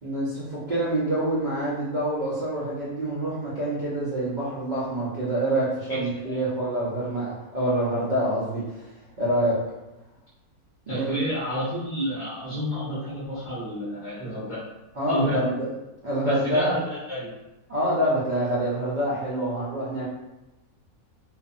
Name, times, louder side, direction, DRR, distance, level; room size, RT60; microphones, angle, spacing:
voice 1, 0.0-8.9 9.2-9.6 10.9-11.2 15.0-15.7 16.0-16.8 17.7-20.0, right 1 dB, 80° right, -8 dB, 0.4 m, -26 dB
voice 2, 5.9-6.4 10.9-14.6 15.1-15.4 16.2-17.3, equal, 30° left, -10 dB, 0.6 m, -30 dB
2.5 x 2.4 x 2.5 m, 1.0 s
omnidirectional pair, 1.6 m